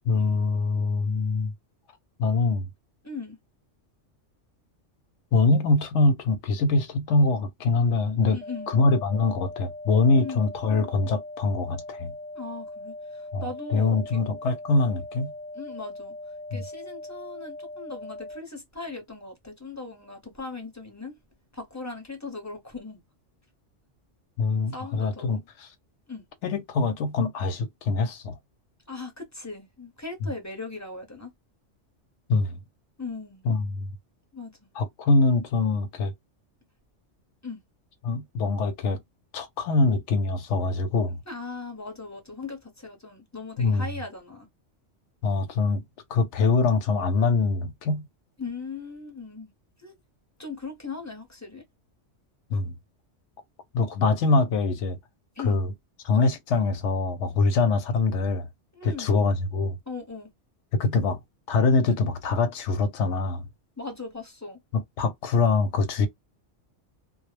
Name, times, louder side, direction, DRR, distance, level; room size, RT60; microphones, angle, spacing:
voice 1, 0.1-1.5 2.2-2.7 5.3-8.4 8.7-12.1 13.3-15.3 16.5-16.6 24.4-25.7 26.4-28.3 32.3-32.6 33.4-33.9 34.8-36.1 38.0-39.0 39.3-41.2 43.6-43.9 45.2-45.8 46.1-48.1 52.5-52.7 53.7-55.0 55.4-55.7 56.0-58.5 58.8-59.8 60.7-61.2 61.5-63.4 64.7-66.1, left 3 dB, 75° left, 0.9 m, -24 dB
voice 2, 3.0-3.4 8.3-8.7 10.2-10.5 12.3-14.2 15.5-16.2 16.5-21.2 21.5-23.0 24.7-25.5 26.1-26.2 28.9-31.3 33.0-33.4 34.3-34.5 37.4-37.6 41.3-44.5 48.4-49.5 49.8-49.9 50.4-51.6 55.4-55.6 58.7-59.2 59.9-60.3 63.8-64.6, left 4 dB, 15° left, 0.7 m, -38 dB
sound 1, 8.4-18.4, left 2 dB, 65° right, 0.7 m, -40 dB
2.2 x 2.0 x 3.0 m
omnidirectional pair, 1.3 m